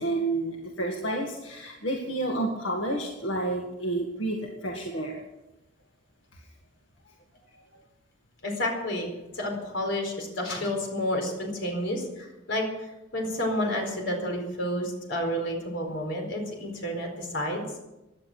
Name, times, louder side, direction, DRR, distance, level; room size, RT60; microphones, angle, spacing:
voice 1, 0.0-5.2, right 2 dB, 85° left, 0 dB, 2.1 m, -30 dB
voice 2, 8.4-17.6, left 1 dB, 70° left, 2 dB, 4.6 m, -30 dB
17.0 x 11.0 x 6.3 m, 0.99 s
head